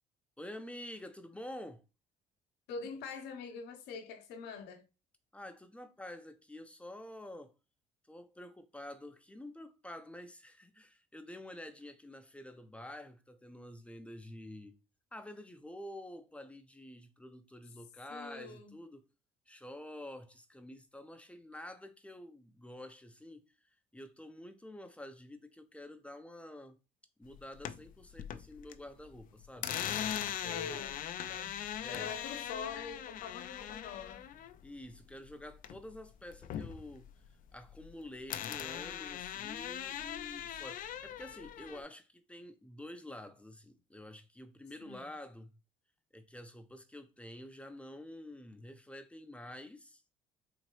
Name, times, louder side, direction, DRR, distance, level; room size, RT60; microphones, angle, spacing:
voice 1, 0.4-1.8 5.3-7.5 8.1-14.8 15.1-19.0 19.5-23.5 23.9-26.8 27.2-29.7 30.4-30.8 31.8-32.1 34.6-37.1 37.5-45.5 46.1-50.0, left 1 dB, 5° left, 0.5 m, -48 dB
voice 2, 2.7-4.8 18.1-18.8 30.5-31.0 31.3-34.2 44.8-45.1, left 5 dB, 85° left, 0.9 m, -44 dB
sound 1, 27.3-28.8 29.1-36.0 36.3-37.9 38.3-41.8, left 10 dB, 55° left, 0.4 m, -40 dB
4.0 x 2.8 x 3.1 m
cardioid pair, 110°, 17 cm